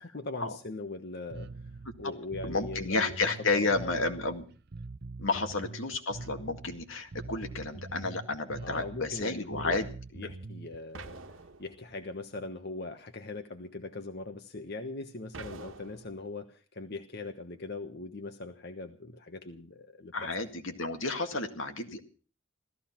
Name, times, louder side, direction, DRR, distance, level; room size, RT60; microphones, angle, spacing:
voice 1, 0.0-1.7 2.0-3.2 3.5-4.1 5.4-5.5 8.6-9.8 10.1-11.2 11.6-20.3, left 2 dB, 55° left, 6 dB, 1.2 m, -40 dB
Bass guitar, 1.3-10.8, right 3 dB, 50° right, 0.7 m, -44 dB
voice 2, 2.4-4.4 5.2-9.9 20.1-22.0, left 3 dB, 80° left, 5 dB, 2.1 m, -31 dB
sound 1, 10.9-12.2 15.3-16.3, right 3 dB, 85° right, 1.3 m, -46 dB
16.5 x 14.0 x 5.9 m, 0.40 s
head